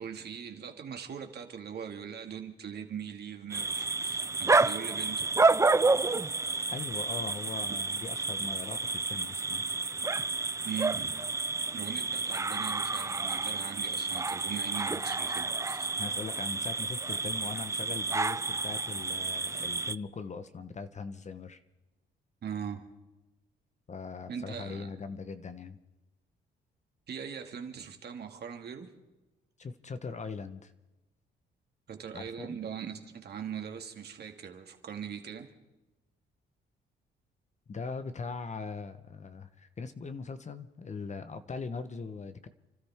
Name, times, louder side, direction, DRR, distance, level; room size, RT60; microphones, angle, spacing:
voice 1, 0.0-5.3 10.6-11.1 11.7-15.9 22.4-22.8 24.3-25.0 27.1-28.9 31.9-35.5, right 7 dB, 55° right, 4 dB, 2.2 m, -41 dB
sound 1, 3.5-20.0, right 3 dB, 15° right, 0.5 m, -30 dB
voice 2, 6.7-9.6 16.0-21.6 23.9-25.8 29.6-30.7 32.1-32.6 37.7-42.5, left 4 dB, 35° left, 11 dB, 1.1 m, -40 dB
29.5 x 13.0 x 3.6 m, 1.0 s
cardioid pair, 90°, 20 cm